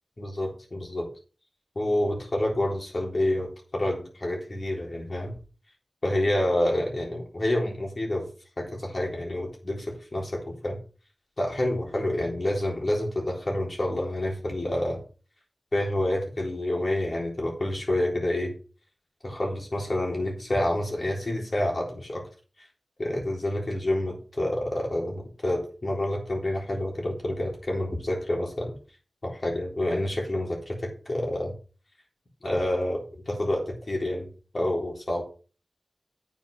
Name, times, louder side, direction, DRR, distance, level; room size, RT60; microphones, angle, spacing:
voice 1, 0.2-1.1 1.8-5.4 6.0-8.3 8.6-10.8 11.4-15.0 15.7-18.5 19.2-22.3 23.0-28.8 29.2-31.5 32.4-34.3 34.5-35.2, left 1 dB, 50° left, -1 dB, 3.7 m, -28 dB
9.0 x 5.2 x 6.0 m, 0.36 s
wide cardioid pair, 60°, 0 cm